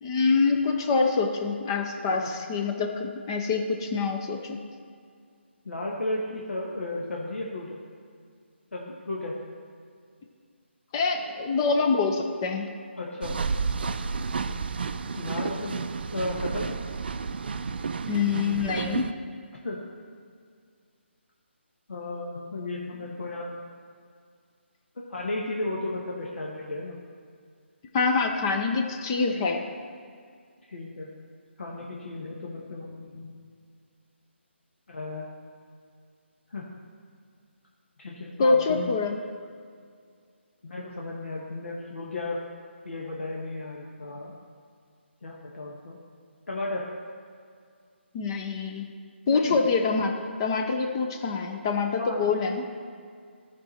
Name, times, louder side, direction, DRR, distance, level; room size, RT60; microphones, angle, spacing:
voice 1, 0.0-4.6 10.9-12.7 18.1-19.1 27.9-29.6 38.4-39.2 48.1-48.9 49.3-52.7, left 4 dB, 20° left, 4 dB, 0.5 m, -25 dB
voice 2, 5.6-7.8 8.7-9.4 13.0-13.4 15.1-16.8 19.6-19.8 21.9-23.5 25.1-27.0 30.7-31.1 31.6-33.3 34.9-35.3 36.5-36.7 38.0-38.9 40.6-42.4 42.8-44.3 45.2-46.0 46.5-46.8 49.3-49.6 52.0-52.3, left 2 dB, 80° left, -3 dB, 1.2 m, -34 dB
sound 1, 13.2-19.1, right 5 dB, 55° right, 0.4 m, -31 dB
14.5 x 4.8 x 4.2 m, 2.2 s
hypercardioid pair, 165°, 7 cm